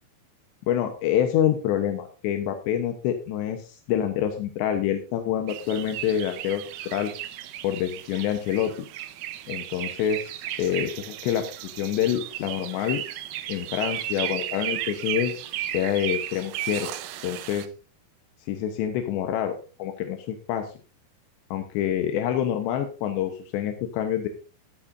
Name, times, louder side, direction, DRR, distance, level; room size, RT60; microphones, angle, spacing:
voice 1, 0.7-7.1 7.6-8.9 9.5-13.0 13.5-15.3 15.7-16.9 17.2-17.7 18.5-19.5 19.8-20.7 21.5-24.3, left 10 dB, 85° left, 5 dB, 3.3 m, -27 dB
sound 1, 5.5-17.7, right 13 dB, 75° right, 2.1 m, -34 dB
15.0 x 12.5 x 2.7 m, 0.34 s
omnidirectional pair, 5.0 m